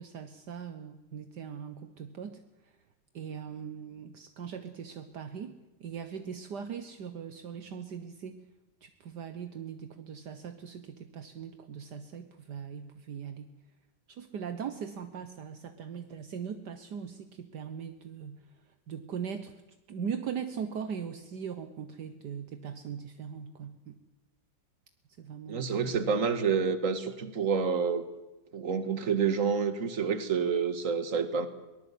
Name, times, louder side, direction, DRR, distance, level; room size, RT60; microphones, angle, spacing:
voice 1, 0.0-2.7 3.1-5.5 5.8-8.4 8.8-13.5 14.1-18.4 18.9-19.6 19.9-24.0 25.2-25.8, right 7 dB, 65° right, 9 dB, 1.6 m, -40 dB
voice 2, 25.5-28.1 28.5-31.5, right 6 dB, 45° right, 10 dB, 2.0 m, -28 dB
22.5 x 19.0 x 8.4 m, 0.99 s
omnidirectional pair, 2.0 m